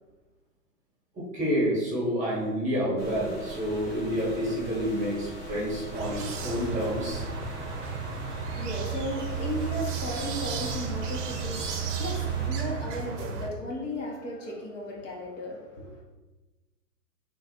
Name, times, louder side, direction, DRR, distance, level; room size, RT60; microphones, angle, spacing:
voice 1, 1.1-7.3, equal, 15° right, -6 dB, 1.1 m, -29 dB
sound 1, 3.0-12.5, right 1 dB, 15° left, 0.5 m, -41 dB
sound 2, 5.9-13.5, right 6 dB, 50° right, 0.6 m, -33 dB
voice 2, 8.5-16.0, left 1 dB, 50° left, -2 dB, 1.1 m, -35 dB
3.2 x 2.4 x 4.2 m, 1.2 s
hypercardioid pair, 120°, 47 cm